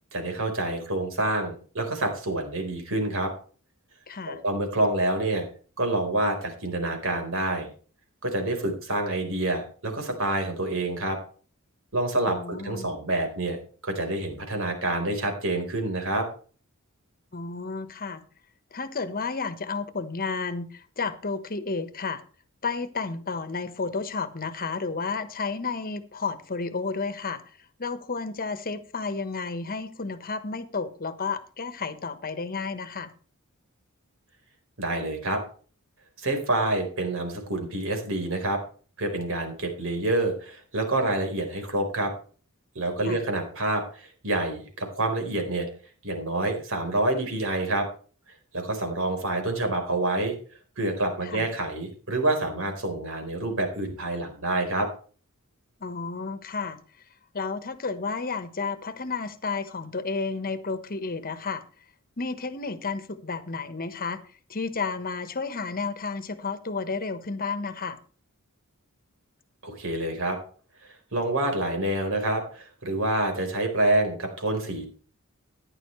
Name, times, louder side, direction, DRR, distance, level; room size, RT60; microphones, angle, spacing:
voice 1, 0.1-3.3 4.3-5.5 5.8-7.7 8.2-11.2 11.9-13.6 13.8-16.3 34.8-35.4 36.2-38.6 39.0-42.1 42.7-45.7 46.0-47.9 48.5-50.3 50.8-54.9 69.6-70.4 71.1-74.9, right 2 dB, 65° right, 4.3 m, -27 dB
voice 2, 4.1-4.4 12.2-12.9 17.3-18.2 18.7-22.2 22.6-27.4 27.8-33.1 43.0-43.2 51.2-51.5 55.8-56.8 57.3-61.6 62.2-64.2 64.5-68.0, left 4 dB, 40° left, 1.3 m, -32 dB
14.5 x 11.0 x 3.2 m
head